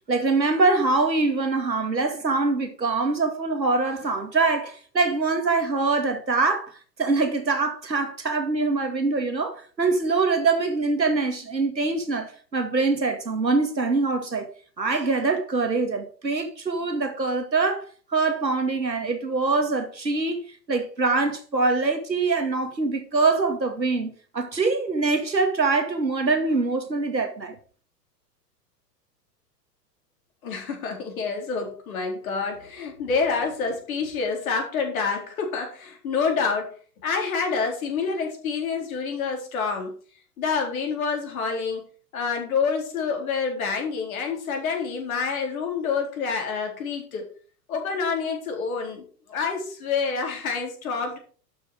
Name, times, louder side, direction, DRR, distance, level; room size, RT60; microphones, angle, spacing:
voice 1, 0.1-6.7 7.0-14.5 14.8-17.8 18.1-20.4 20.7-27.6, right 3 dB, 85° right, 2.2 m, -24 dB
voice 2, 30.4-36.7 37.0-39.9 40.4-41.8 42.1-47.2 47.7-51.2, left 5 dB, 55° left, 4.3 m, -27 dB
12.0 x 6.7 x 4.9 m
figure-of-eight pair, 100°, 50 cm